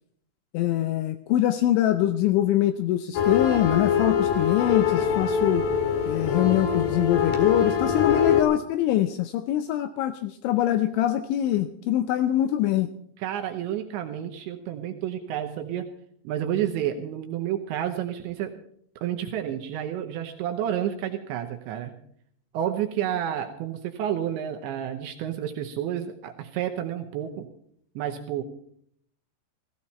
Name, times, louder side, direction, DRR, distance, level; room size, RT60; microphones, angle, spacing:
voice 1, 0.5-5.6 6.1-12.9, left 12 dB, 80° left, 10 dB, 2.7 m, -24 dB
sound 1, 3.1-8.4, left 7 dB, 60° left, 3.2 m, -24 dB
voice 2, 7.8-8.3 13.2-15.9 16.2-18.6 19.0-22.0 22.5-27.5 28.0-28.4, right 10 dB, 75° right, 4 dB, 2.8 m, -30 dB
16.5 x 15.0 x 4.2 m, 0.67 s
omnidirectional pair, 5.9 m